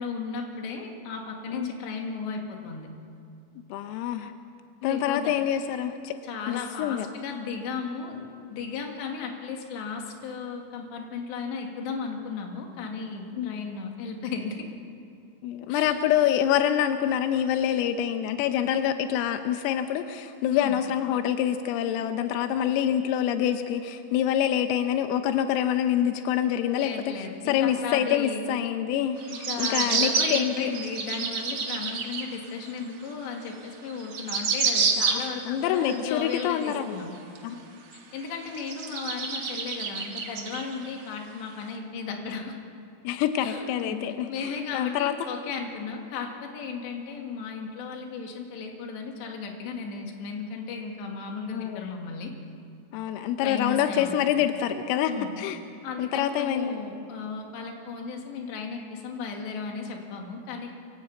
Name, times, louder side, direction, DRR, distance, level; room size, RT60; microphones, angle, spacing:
voice 1, 0.0-2.9 4.8-5.3 6.2-8.2 8.5-14.7 15.7-16.0 20.5-20.8 26.8-28.4 29.3-37.1 37.9-42.5 43.4-44.0 44.3-52.3 53.4-54.3 55.1-55.3 55.8-60.7, left 5 dB, 65° left, 2 dB, 4.1 m, -35 dB
voice 2, 3.7-4.3 4.8-6.2 6.5-7.1 13.4-13.5 15.4-30.7 35.1-37.0 37.4-37.5 43.1-45.1 51.5-51.9 52.9-55.6 56.0-56.8, left 10 dB, 90° left, 8 dB, 3.5 m, -26 dB
sound 1, 29.2-32.3 32.8-32.9 33.6-33.7 33.9-35.5 35.9-36.8 37.4-37.5 37.9-38.0 38.5-41.0 41.5-41.6, right 5 dB, 90° right, 1.3 m, -28 dB
24.0 x 15.5 x 8.4 m, 2.7 s
omnidirectional pair, 5.9 m